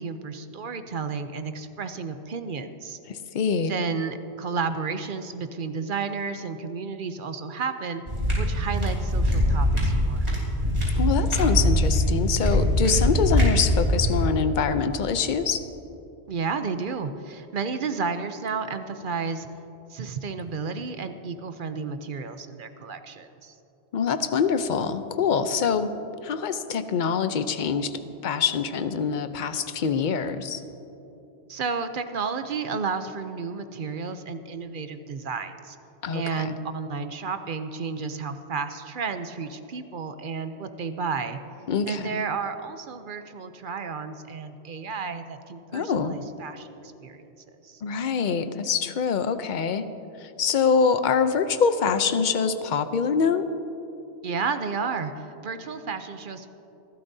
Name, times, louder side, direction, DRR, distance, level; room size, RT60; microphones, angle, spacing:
voice 1, 0.0-3.0 3.7-8.0 8.4-10.3 16.3-19.5 19.9-23.5 31.5-35.8 36.1-41.4 41.9-46.7 47.0-47.3 47.6-47.8 54.2-56.5, right 5 dB, 55° right, 9 dB, 0.8 m, -32 dB
voice 2, 3.1-3.7 11.0-15.6 23.9-25.9 26.2-30.6 36.0-36.5 41.7-42.2 45.7-46.2 47.8-49.9 50.2-53.5, left 6 dB, 50° left, 10 dB, 0.7 m, -25 dB
sound 1, 8.1-14.2, equal, 35° right, 3.8 m, -22 dB
26.5 x 12.5 x 2.7 m, 3.0 s
omnidirectional pair, 1.1 m